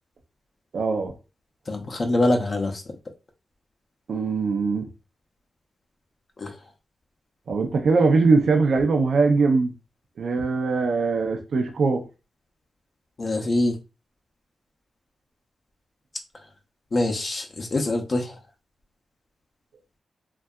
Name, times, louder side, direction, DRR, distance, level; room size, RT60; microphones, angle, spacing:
voice 1, 0.7-1.1 4.1-4.8 7.5-9.7 10.2-12.1, right 4 dB, 75° right, 0.4 m, -21 dB
voice 2, 1.7-2.8 6.4-6.5 13.2-13.7 16.9-18.3, left 2 dB, 45° left, 0.5 m, -24 dB
2.6 x 2.2 x 2.2 m
wide cardioid pair, 90°, 0 cm